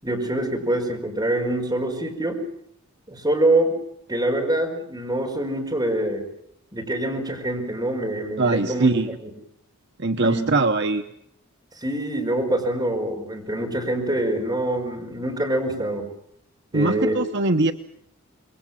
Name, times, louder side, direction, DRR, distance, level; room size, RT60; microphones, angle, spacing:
voice 1, 0.0-2.4 3.1-3.8 4.1-6.3 6.7-8.9 10.2-10.4 11.7-16.1 16.7-17.2, right 1 dB, 15° right, 0 dB, 5.3 m, -25 dB
voice 2, 8.4-9.1 10.0-11.0 16.7-17.7, right 3 dB, 50° right, 6 dB, 1.0 m, -21 dB
27.5 x 22.5 x 7.4 m, 0.72 s
head